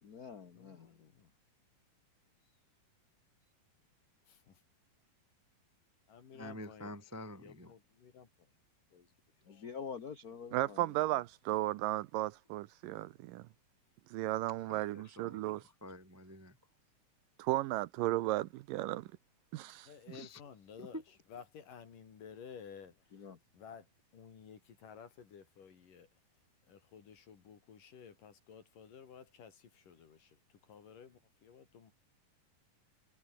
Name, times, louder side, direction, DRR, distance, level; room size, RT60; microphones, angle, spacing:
voice 1, 0.0-0.9 9.5-10.9 23.1-23.4, left 6 dB, 50° left, 1.1 m, -46 dB
voice 2, 0.5-1.3 4.3-4.6 6.1-7.0 7.3-8.5 8.9-9.1 9.4-9.7 19.8-21.0 21.3-23.9 24.1-26.1 26.7-31.9, left 7 dB, 70° left, 4.7 m, -54 dB
voice 3, 6.3-7.7 14.7-16.6 20.1-20.4 20.8-21.0, left 1 dB, 10° right, 1.0 m, -48 dB
voice 4, 10.5-13.5 14.1-15.6 17.4-19.1 19.5-19.9, right 17 dB, 80° right, 2.4 m, -34 dB
omnidirectional pair, 4.0 m